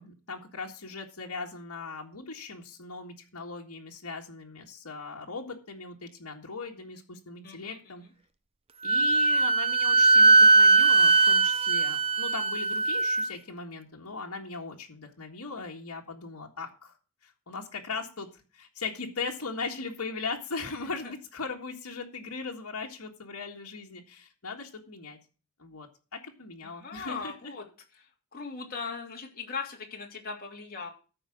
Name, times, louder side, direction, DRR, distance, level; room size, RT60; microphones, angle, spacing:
voice 1, 0.0-8.0 8.8-17.0 17.2-25.2 25.6-27.5, left 4 dB, 80° left, 0 dB, 1.8 m, -39 dB
voice 2, 7.4-7.8 20.7-21.1 26.6-27.6 28.3-30.9, left 5 dB, 40° left, 0 dB, 2.9 m, -39 dB
Wind instrument woodwind instrument, 8.8-13.3, right 3 dB, 25° right, 0.5 m, -20 dB
13.5 x 5.0 x 6.4 m, 0.35 s
head